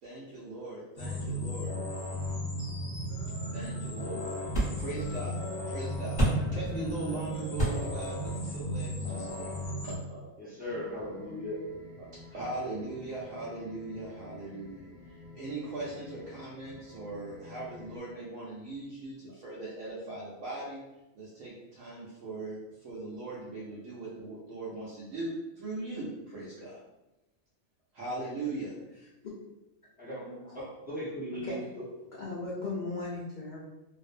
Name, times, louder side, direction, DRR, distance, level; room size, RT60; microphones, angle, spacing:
voice 1, 0.0-1.7 3.5-4.2 4.8-5.4 5.7-10.3 12.3-14.9 15.3-20.8 21.1-26.8 27.9-28.7, right 2 dB, 80° right, -7 dB, 1.0 m, -39 dB
sound 1, 1.0-10.0, equal, 55° left, 0.8 m, -35 dB
sound 2, 2.8-9.9, right 1 dB, 20° left, 0.9 m, -35 dB
voice 2, 10.4-11.6 30.0-31.8, left 1 dB, 15° right, -9 dB, 0.3 m, -38 dB
sound 3, 10.6-18.0, left 3 dB, 35° right, 0.8 m, -51 dB
voice 3, 29.0-29.3 30.4-30.6 31.4-31.6 32.2-33.7, left 3 dB, 90° left, -5 dB, 0.4 m, -37 dB
2.4 x 2.0 x 2.4 m, 0.97 s
omnidirectional pair, 1.4 m